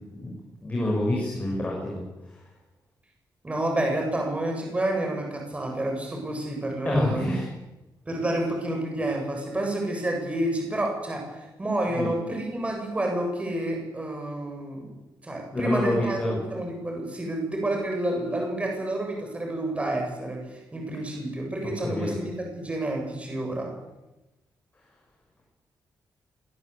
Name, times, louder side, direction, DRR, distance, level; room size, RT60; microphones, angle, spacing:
voice 1, 0.6-2.0 6.8-7.5 11.9-12.1 15.5-16.4 21.8-22.2, left 1 dB, 20° left, -2 dB, 6.9 m, -27 dB
voice 2, 3.4-7.3 8.1-14.9 15.2-16.2 16.5-23.7, right 1 dB, 15° right, 1 dB, 7.3 m, -29 dB
26.0 x 21.5 x 8.4 m, 1.0 s
wide cardioid pair, 170°, 8 cm